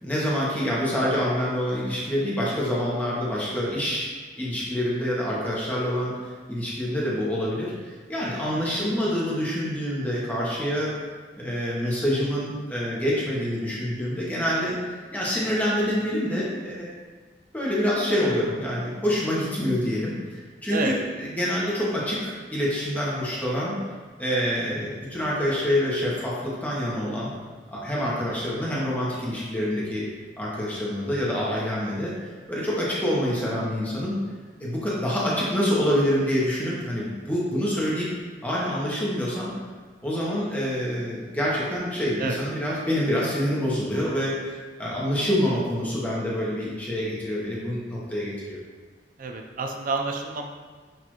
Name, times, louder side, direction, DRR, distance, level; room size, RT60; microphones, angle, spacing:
voice 1, 0.0-4.1 4.4-10.9 11.4-16.9 17.5-23.8 24.2-27.3 27.7-30.0 30.4-34.2 34.6-38.1 38.4-39.5 40.0-48.6, equal, 10° left, -6 dB, 0.9 m, -26 dB
voice 2, 8.5-9.0 20.7-21.0 27.9-28.4 42.2-42.4 49.2-50.5, right 3 dB, 50° right, 3 dB, 0.5 m, -30 dB
6.2 x 2.6 x 3.0 m, 1.4 s
head